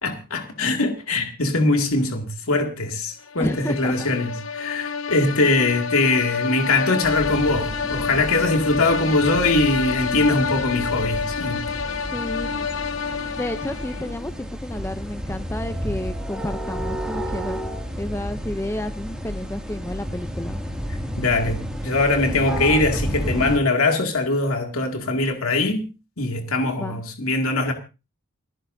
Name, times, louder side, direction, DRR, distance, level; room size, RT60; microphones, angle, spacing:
voice 1, 0.0-11.7 20.9-25.8 26.2-27.7, left 2 dB, 85° left, 2.3 m, -22 dB
sound 1, 3.3-14.2, left 5 dB, 70° left, 0.9 m, -28 dB
voice 2, 3.4-4.1 12.1-12.7 13.4-17.6 18.0-20.6 26.8-27.0, left 1 dB, 10° left, 0.6 m, -31 dB
sound 2, 7.0-23.6, equal, 5° right, 2.3 m, -31 dB
29.5 x 10.0 x 2.7 m
head